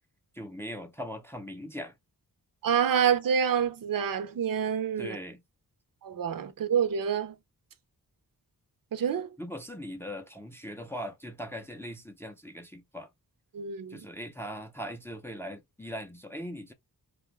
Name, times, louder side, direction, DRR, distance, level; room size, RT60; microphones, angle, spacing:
voice 1, 0.3-1.9 5.0-5.4 9.4-13.1 13.9-16.7, equal, 5° left, 0.4 m, -40 dB
voice 2, 2.6-5.2 6.0-7.3 8.9-9.3 13.5-14.0, right 8 dB, 65° right, 0.5 m, -27 dB
2.6 x 2.2 x 3.2 m
wide cardioid pair, 125°, 37 cm